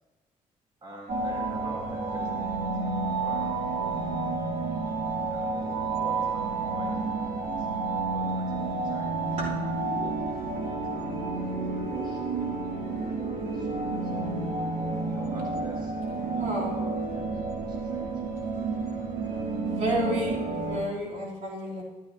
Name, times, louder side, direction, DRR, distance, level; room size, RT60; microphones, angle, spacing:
voice 1, 0.8-4.5 4.7-4.8 5.3-7.7 8.1-9.2 9.8-14.4 15.1-19.4 19.9-20.1 20.7-20.9, right 1 dB, 30° right, -3 dB, 3.1 m, -48 dB
sound 1, 1.1-20.8, right 3 dB, 80° right, 1.6 m, -30 dB
voice 2, 16.3-16.7 19.6-21.8, equal, 60° right, -6 dB, 3.2 m, -31 dB
13.0 x 12.0 x 2.8 m, 1.2 s
cardioid pair, 115°, 15 cm